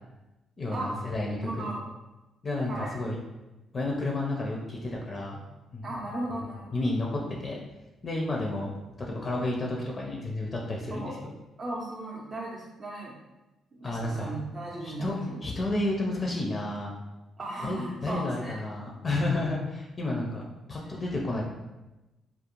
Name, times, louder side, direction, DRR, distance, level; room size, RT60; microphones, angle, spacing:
voice 1, 0.6-1.7 2.4-3.2 3.7-5.4 5.7-5.9 6.3-7.6 8.0-8.7 9.0-11.3 13.8-14.3 14.8-15.2 15.4-16.9 17.6-21.4, left 2 dB, 35° left, -1 dB, 0.4 m, -31 dB
voice 2, 1.4-1.8 2.7-2.9 5.8-6.8 10.9-11.2 11.6-13.2 13.7-15.5 17.4-18.6 20.8-21.1, right 2 dB, 35° right, -5 dB, 0.5 m, -36 dB
2.4 x 2.0 x 2.9 m, 1.0 s
cardioid pair, 90°, 0 cm